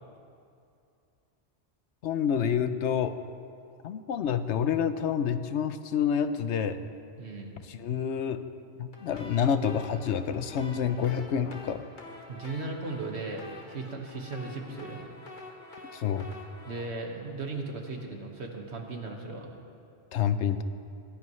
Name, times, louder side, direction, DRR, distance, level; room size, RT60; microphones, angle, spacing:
voice 1, 2.0-3.1 3.8-6.8 7.7-8.4 8.8-11.8 15.9-16.3 20.1-20.6, left 8 dB, 80° left, 11 dB, 1.0 m, -28 dB
voice 2, 7.2-7.5 12.3-15.0 16.6-19.5, right 3 dB, 70° right, 2 dB, 1.9 m, -37 dB
sound 1, 8.9-18.0, left 2 dB, 45° left, 1.6 m, -48 dB
21.5 x 16.5 x 3.2 m, 2.5 s
omnidirectional pair, 1.2 m